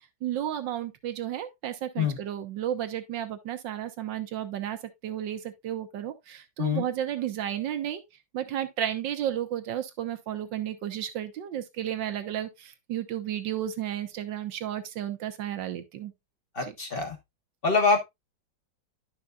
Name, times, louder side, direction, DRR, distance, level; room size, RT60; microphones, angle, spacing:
voice 1, 0.2-4.8 5.0-8.0 8.3-16.1, right 11 dB, 75° right, 1.6 m, -33 dB
voice 2, 16.5-17.2 17.6-18.0, left 4 dB, 30° left, 1.4 m, -25 dB
11.0 x 5.8 x 2.4 m
omnidirectional pair, 2.1 m